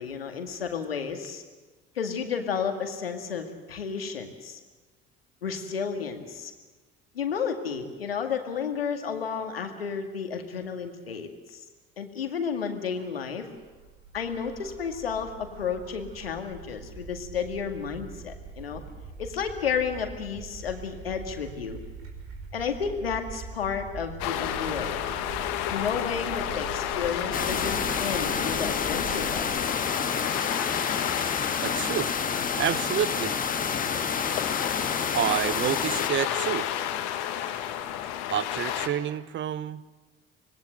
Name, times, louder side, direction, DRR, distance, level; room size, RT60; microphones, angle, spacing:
voice 1, 0.0-1.4 2.0-4.6 5.4-6.5 7.1-11.6 12.0-13.5 14.1-18.8 19.2-21.8 22.5-24.9 25.7-29.5, left 6 dB, 85° left, 5 dB, 2.1 m, -32 dB
sound 1, 12.6-29.5, right 4 dB, 60° right, 5.3 m, -43 dB
sound 2, 24.2-38.9, left 11 dB, 65° left, 2.0 m, -32 dB
sound 3, 27.3-36.1, left 6 dB, 30° left, 1.7 m, -29 dB
voice 2, 31.6-32.1 32.6-33.4 35.1-36.7 38.3-40.0, right 10 dB, 40° right, 18 dB, 0.9 m, -29 dB
26.0 x 19.5 x 7.8 m, 1.3 s
figure-of-eight pair, 60°, 29 cm